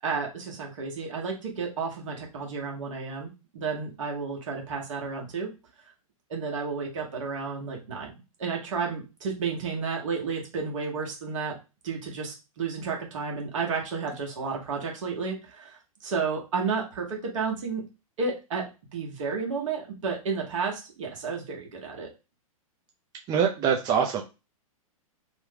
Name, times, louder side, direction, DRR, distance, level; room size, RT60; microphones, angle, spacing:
voice 1, 0.0-5.5 6.3-8.1 8.4-11.6 11.8-17.8 18.2-22.1, right 5 dB, 60° right, 0 dB, 1.3 m, -32 dB
voice 2, 23.3-24.2, right 7 dB, 20° right, 1 dB, 0.4 m, -24 dB
3.0 x 2.2 x 3.4 m, 0.29 s
figure-of-eight pair, 110°, 18 cm